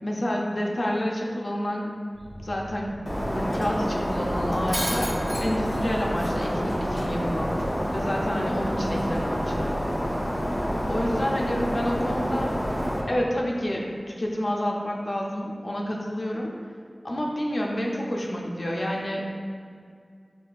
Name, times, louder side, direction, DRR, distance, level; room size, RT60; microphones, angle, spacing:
voice 1, 0.0-1.9 2.4-3.0 3.3-5.1 5.4-7.6 7.9-9.7 10.9-12.5 13.1-16.5 17.0-19.3, equal, 65° left, -2 dB, 0.5 m, -29 dB
sound 1, 2.1-8.0, right 1 dB, 50° right, 0.6 m, -41 dB
Shatter, 3.1-13.0, equal, 35° left, 0.8 m, -28 dB
5.6 x 2.5 x 2.4 m, 2.1 s
wide cardioid pair, 50°, 0 cm